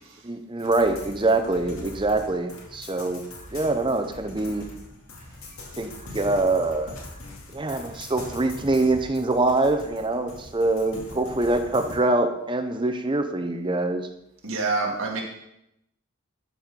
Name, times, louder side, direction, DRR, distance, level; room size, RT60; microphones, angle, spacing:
voice 1, 0.2-3.2 3.5-4.7 5.8-7.0 7.5-14.1, right 2 dB, 20° right, 6 dB, 0.7 m, -24 dB
sound 1, 0.6-12.0, left 2 dB, 65° left, 2.2 m, -42 dB
voice 2, 14.4-15.2, right 3 dB, 65° right, 0 dB, 2.0 m, -26 dB
12.5 x 4.6 x 5.3 m, 0.83 s
head